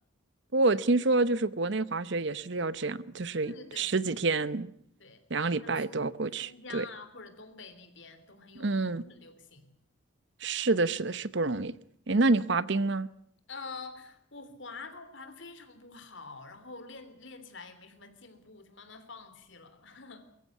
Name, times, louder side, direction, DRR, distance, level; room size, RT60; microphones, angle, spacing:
voice 1, 0.5-4.7 5.3-6.8 8.6-9.0 10.4-11.7 12.1-13.1, right 3 dB, 60° right, 0.9 m, -28 dB
voice 2, 3.4-3.9 5.0-5.2 5.6-6.0 6.4-9.7 13.5-20.2, left 4 dB, 60° left, 3.2 m, -47 dB
23.0 x 15.0 x 9.5 m
head